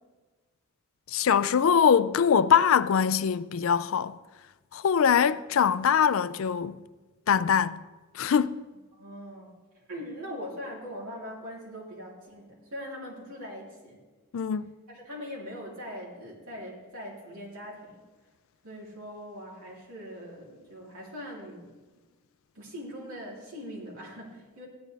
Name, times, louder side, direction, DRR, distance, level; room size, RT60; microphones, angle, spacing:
voice 1, 1.1-4.2 4.7-6.8 7.3-7.8 8.1-8.6 14.3-14.7, left 7 dB, 65° left, 0.4 m, -23 dB
voice 2, 8.9-9.5 9.9-14.0 14.9-18.0 18.6-21.7 22.6-24.7, equal, 80° right, 3.5 m, -41 dB
15.0 x 10.5 x 3.4 m
head